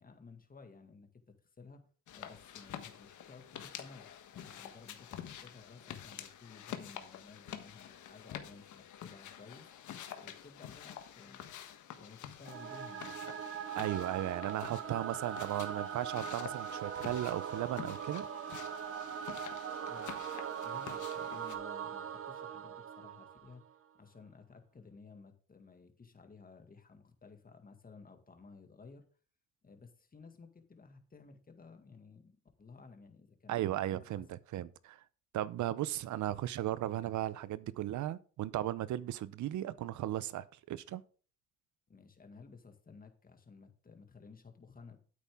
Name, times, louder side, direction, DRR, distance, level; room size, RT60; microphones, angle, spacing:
voice 1, 0.0-1.9 2.1-9.7 10.2-11.5 11.9-13.4 14.8-14.9 19.8-20.2 20.6-23.6 23.9-29.1 29.6-33.8 34.0-34.2 34.5-34.6 41.9-45.0, left 4 dB, 30° left, 2.0 m, -55 dB
sound 1, 2.1-21.6, left 10 dB, 75° left, 1.4 m, -48 dB
Singing / Musical instrument, 12.4-23.7, right 8 dB, 45° right, 0.9 m, -41 dB
voice 2, 13.8-18.3 33.5-35.0 35.3-41.0, right 13 dB, 75° right, 0.7 m, -36 dB
9.6 x 8.5 x 3.6 m
cardioid pair, 90°, 30 cm